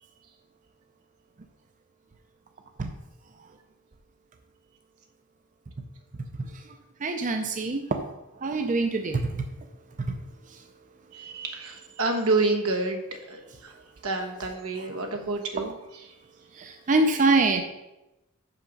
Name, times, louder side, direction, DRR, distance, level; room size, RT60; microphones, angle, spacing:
voice 1, 7.0-8.0 8.4-9.2 16.6-17.6, right 3 dB, 35° right, 5 dB, 0.5 m, -24 dB
voice 2, 11.1-13.7 14.0-15.7, right 3 dB, 90° right, 3 dB, 1.2 m, -28 dB
6.0 x 5.7 x 5.3 m, 0.95 s
head